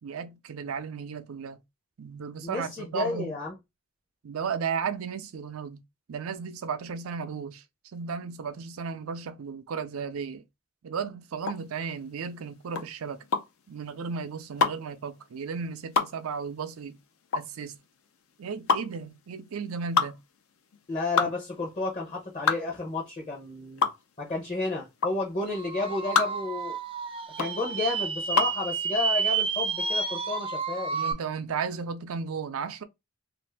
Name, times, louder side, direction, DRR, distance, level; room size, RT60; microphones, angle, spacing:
voice 1, 0.0-1.6 2.0-3.4 4.2-5.8 6.1-7.6 7.9-10.4 10.8-13.2 13.7-17.0 17.3-17.8 18.4-20.2 21.2-21.3 30.9-32.8, right 6 dB, 80° right, 0.5 m, -34 dB
voice 2, 2.4-3.5 20.9-23.9 24.2-26.8 27.4-31.0, left 3 dB, 35° left, 0.7 m, -31 dB
sound 1, 11.4-28.6, left 5 dB, 75° left, 0.5 m, -29 dB
sound 2, 25.5-31.1, right 5 dB, 25° right, 0.4 m, -30 dB
2.6 x 2.5 x 3.3 m
head